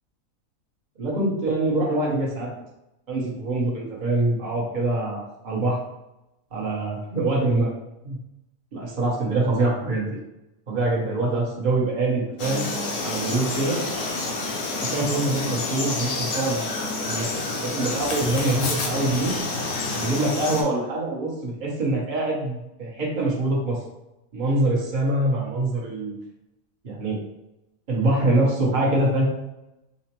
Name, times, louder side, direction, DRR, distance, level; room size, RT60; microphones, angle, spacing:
voice 1, 1.0-2.5 3.1-5.8 6.5-7.7 8.0-8.2 8.7-10.2 10.7-12.7 13.0-13.8 14.9-16.6 17.1-19.3 19.9-23.8 24.3-26.2 26.8-27.2 27.9-29.2, right 2 dB, 40° right, -4 dB, 1.0 m, -24 dB
Frog, 12.4-20.6, left 2 dB, 80° left, 1.2 m, -28 dB
5.0 x 2.1 x 2.9 m, 0.92 s
omnidirectional pair, 1.5 m